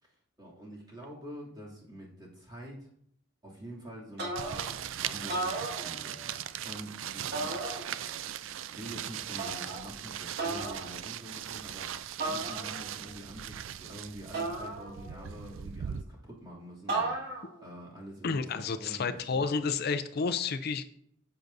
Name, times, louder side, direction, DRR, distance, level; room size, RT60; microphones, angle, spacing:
voice 1, 0.0-2.9 3.4-7.6 8.4-19.5, equal, 20° right, -4 dB, 2.6 m, -46 dB
sound 1, 4.2-4.8 5.2-6.3 7.3-8.2 9.4-9.9 10.4-10.9 12.2-13.0 14.3-15.3 16.9-17.6, right 2 dB, 60° right, 1.8 m, -35 dB
sound 2, 4.4-16.0, right 10 dB, 85° right, 0.4 m, -39 dB
voice 2, 18.2-20.8, left 5 dB, 55° left, 11 dB, 0.5 m, -30 dB
9.8 x 7.7 x 2.7 m, 0.67 s
head